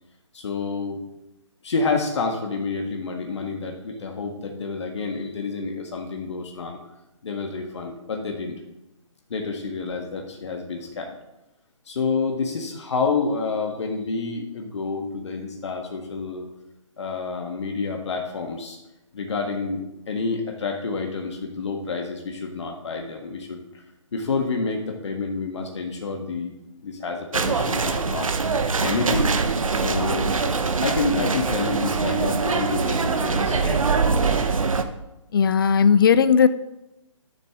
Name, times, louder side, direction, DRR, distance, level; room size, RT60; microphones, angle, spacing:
voice 1, 0.3-1.0 1.6-6.8 7.2-8.5 9.3-11.2 11.9-16.5 17.0-18.8 19.1-23.6 24.1-26.5 26.8-28.3 28.8-29.3 29.7-30.4 30.8-33.8, left 4 dB, 60° left, 2 dB, 1.6 m, -28 dB
sound 1, 27.3-34.8, right 4 dB, 80° right, 1.0 m, -23 dB
voice 2, 35.3-36.5, left 7 dB, 40° left, 15 dB, 0.5 m, -16 dB
12.5 x 6.8 x 3.7 m, 0.91 s
hypercardioid pair, 150°, 17 cm